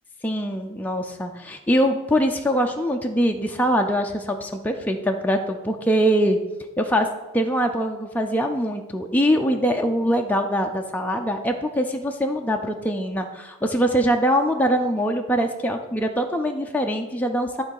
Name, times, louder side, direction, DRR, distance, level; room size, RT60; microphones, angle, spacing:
voice 1, 0.2-6.4 6.8-7.1 7.3-17.6, equal, 5° left, 2 dB, 0.4 m, -23 dB
9.7 x 3.9 x 6.4 m, 1.1 s
head